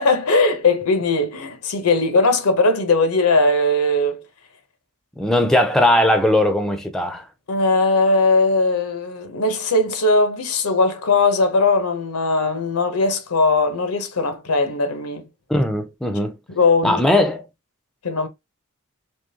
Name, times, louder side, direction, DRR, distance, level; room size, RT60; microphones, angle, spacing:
voice 1, 0.0-4.2 7.5-15.3 16.5-17.0 18.0-18.3, left 3 dB, 90° left, 0.8 m, -19 dB
voice 2, 5.2-7.3 15.5-16.4 16.8-17.4, left 1 dB, ahead, 0.4 m, -18 dB
3.7 x 3.0 x 2.7 m
head